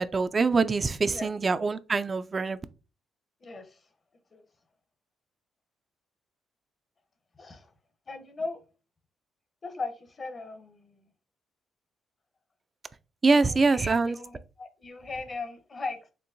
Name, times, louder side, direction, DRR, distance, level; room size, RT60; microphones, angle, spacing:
voice 1, 0.0-2.6 13.2-14.2, right 4 dB, 30° right, 0.3 m, -24 dB
voice 2, 3.4-3.8 4.3-4.4 7.4-7.7 8.1-8.6 9.6-11.1 13.2-16.0, left 3 dB, 35° left, 0.8 m, -38 dB
4.4 x 3.1 x 2.6 m
cardioid pair, 90°, 0 cm